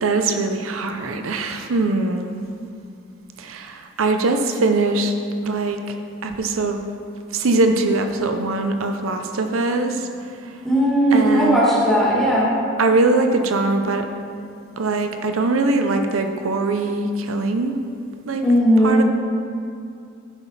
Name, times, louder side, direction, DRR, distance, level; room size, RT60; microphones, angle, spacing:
voice 1, 0.0-2.5 3.4-5.1 5.4-5.8 6.2-6.8 7.3-10.0 11.1-11.6 12.8-14.0 14.8-17.8 18.3-18.4 18.8-19.0, right 3 dB, 85° right, 6 dB, 0.6 m, -21 dB
voice 2, 10.6-12.5 18.4-19.0, equal, ahead, -8 dB, 2.1 m, -17 dB
10.0 x 5.9 x 4.1 m, 2.4 s
head